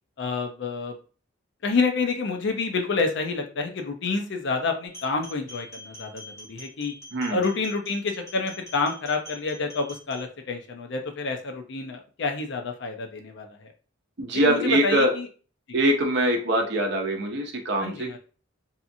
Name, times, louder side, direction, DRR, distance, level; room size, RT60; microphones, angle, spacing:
voice 1, 0.2-1.0 1.6-6.9 7.3-13.7 14.3-15.3 17.8-18.2, left 4 dB, 55° left, 4 dB, 0.5 m, -28 dB
sound 1, 4.9-10.2, left 1 dB, 15° left, 1.1 m, -44 dB
voice 2, 14.2-15.1 15.7-18.2, right 1 dB, 55° right, 2 dB, 0.6 m, -23 dB
2.7 x 2.4 x 2.6 m, 0.38 s
head